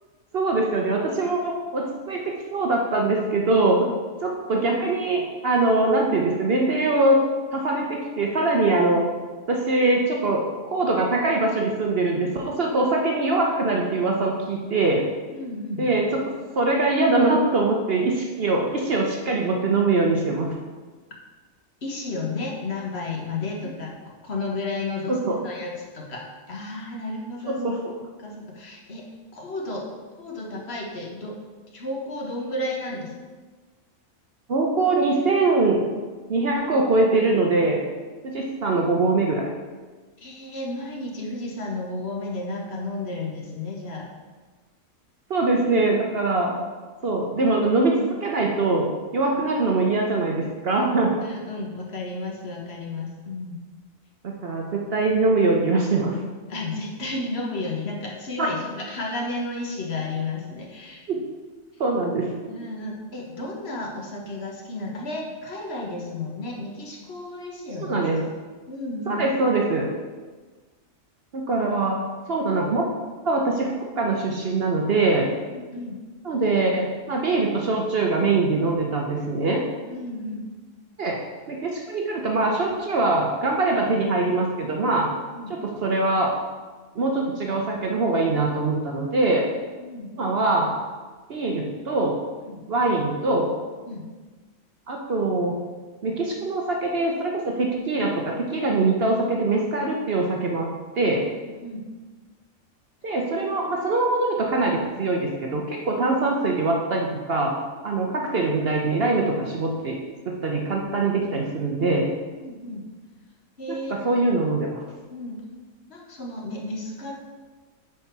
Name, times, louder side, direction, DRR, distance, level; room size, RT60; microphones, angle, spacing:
voice 1, 0.3-3.9 4.2-7.2 7.5-9.0 9.5-15.1 15.8-20.5 25.1-25.4 27.5-27.8 34.5-35.8 36.3-37.8 38.2-39.5 45.3-46.6 47.0-51.1 54.2-56.2 58.4-58.5 61.1-61.2 61.8-62.3 67.9-68.2 69.1-69.9 71.3-72.0 72.3-72.9 73.2-75.3 76.2-79.7 81.0-81.2 81.5-85.1 85.5-86.3 86.9-89.5 90.2-90.7 91.3-92.2 92.7-93.5 94.9-95.6 96.0-100.7 101.0-101.2 103.0-107.6 107.8-110.0 110.3-112.1 113.7-113.8 114.0-114.8, right 2 dB, 55° right, 0 dB, 0.9 m, -23 dB
voice 2, 15.3-15.9 21.8-23.9 24.2-27.7 28.2-29.0 29.3-29.9 30.2-31.4 31.7-33.1 40.2-44.1 49.3-49.4 51.2-53.6 56.5-61.0 62.5-68.1 68.7-69.3 75.5-76.0 79.9-80.5 85.3-85.5 89.8-90.1 92.4-92.6 93.9-94.1 101.4-101.8 106.0-106.1 112.4-112.8 113.6-114.0 115.1-115.4 115.9-117.1, left 2 dB, 50° left, -1 dB, 1.5 m, -32 dB
9.5 x 4.3 x 4.6 m, 1.3 s
omnidirectional pair, 1.4 m